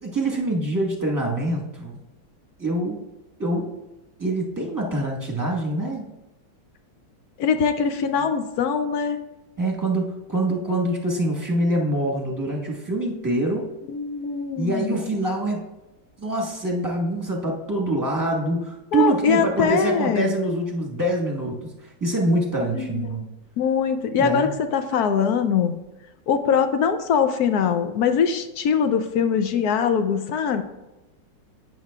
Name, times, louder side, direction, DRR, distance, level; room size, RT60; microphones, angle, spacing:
voice 1, 0.0-2.0 2.6-3.0 3.4-3.7 4.2-6.1 9.6-13.7 14.6-15.6 16.2-23.3 24.2-24.5, right 1 dB, 10° right, -1 dB, 1.1 m, -25 dB
voice 2, 7.4-9.2 13.9-15.0 18.9-20.3 22.7-23.1 23.6-25.8 26.3-30.6, left 6 dB, 70° left, 8 dB, 1.0 m, -22 dB
10.5 x 8.6 x 2.4 m, 0.99 s
omnidirectional pair, 2.1 m